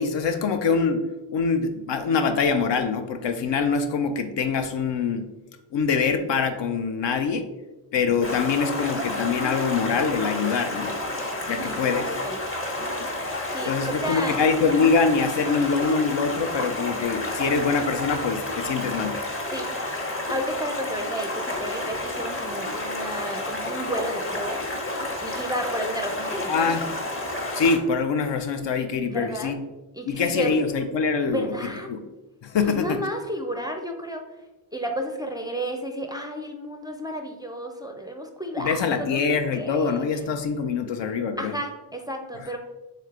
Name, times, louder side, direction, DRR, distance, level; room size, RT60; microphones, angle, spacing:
voice 1, 0.0-5.2 5.7-7.5 7.9-11.0 11.5-12.2 13.7-19.2 26.5-26.9 27.5-29.6 30.1-32.0 32.4-33.0 38.6-41.5 42.3-42.6, left 5 dB, 60° left, 7 dB, 0.5 m, -24 dB
Stream, 8.2-27.8, left 2 dB, 25° left, 0.9 m, -30 dB
voice 2, 13.5-14.4 19.5-19.7 20.3-24.6 25.2-26.8 29.1-29.6 29.9-30.5 31.3-31.9 32.6-34.2 34.7-39.2 39.5-40.0 41.4-42.6, equal, 10° right, 3 dB, 0.4 m, -32 dB
3.2 x 3.1 x 3.6 m, 1.1 s
cardioid pair, 50°, 50 cm